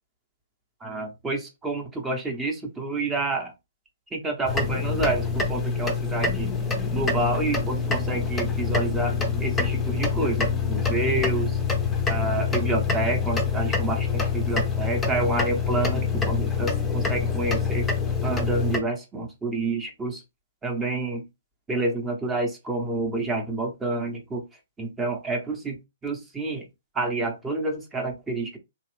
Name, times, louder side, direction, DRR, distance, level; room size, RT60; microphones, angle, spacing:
voice 1, 0.8-3.5 4.1-6.5 6.9-11.6 12.1-17.9 18.2-20.2 20.6-21.2 21.7-24.4 24.8-25.8 26.0-26.7 26.9-28.6, right 2 dB, 15° right, 0.9 m, -28 dB
sound 1, 4.4-18.8, left 5 dB, 10° left, 0.7 m, -26 dB
2.9 x 2.4 x 3.3 m
figure-of-eight pair, 125°, 0 cm